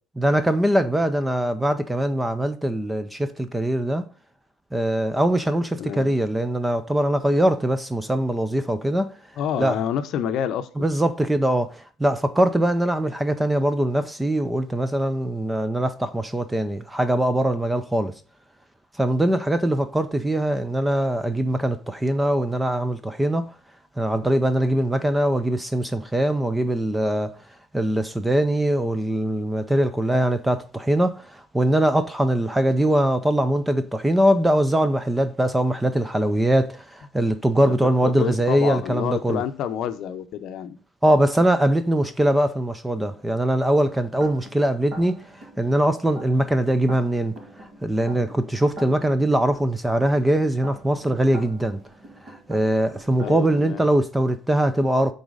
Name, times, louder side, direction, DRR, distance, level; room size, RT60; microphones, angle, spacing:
voice 1, 0.2-4.1 4.7-9.1 9.6-9.8 10.8-18.1 19.0-23.5 24.0-27.3 27.7-39.4 41.0-47.3 47.8-51.8 52.2-55.1, right 1 dB, 5° right, 0.4 m, -22 dB
voice 2, 5.8-6.1 9.4-10.9 37.6-37.7 38.0-40.8 53.2-53.8, left 9 dB, 50° left, 0.7 m, -28 dB
sound 1, 43.7-53.8, right 1 dB, 40° right, 1.9 m, -44 dB
8.2 x 4.0 x 3.9 m
cardioid pair, 175°, 0 cm